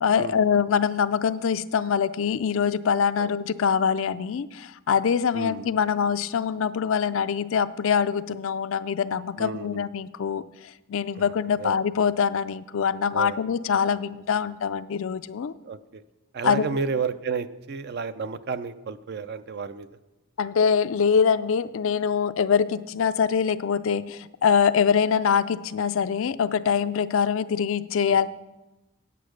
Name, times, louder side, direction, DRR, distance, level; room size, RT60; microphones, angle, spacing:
voice 1, 0.0-15.5 16.4-16.7 20.4-28.3, left 6 dB, 65° left, 14 dB, 0.4 m, -24 dB
voice 2, 5.3-5.7 9.4-9.9 11.6-11.8 13.1-13.4 15.6-16.0 16.3-19.9 28.1-28.2, right 5 dB, 50° right, 13 dB, 0.5 m, -31 dB
8.6 x 8.4 x 6.3 m, 1.0 s
head